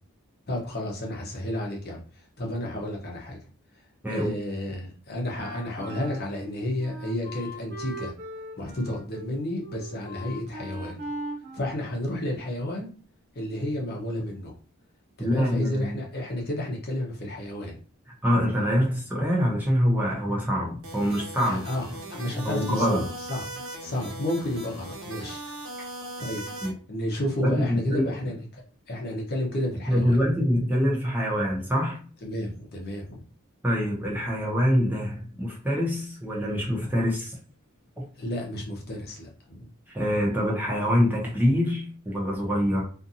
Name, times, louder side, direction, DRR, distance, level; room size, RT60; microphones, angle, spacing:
voice 1, 0.5-2.0 2.4-3.4 4.1-8.1 8.6-11.0 11.5-12.9 13.3-14.5 15.2-17.7 21.4-23.4 23.8-25.4 26.2-26.4 26.9-30.2 32.2-33.2 38.1-39.7, left 1 dB, 45° left, 0 dB, 0.7 m, -31 dB
Wind instrument woodwind instrument, 5.3-12.5, right 1 dB, 50° right, 1.3 m, -40 dB
voice 2, 15.2-16.0 18.2-21.6 22.4-23.1 26.6-26.7 27.4-28.1 29.9-32.0 33.6-37.3 39.9-42.8, equal, 10° right, -4 dB, 0.7 m, -25 dB
sound 1, 20.8-26.7, right 1 dB, 70° right, 1.0 m, -39 dB
2.6 x 2.5 x 2.7 m, 0.39 s
head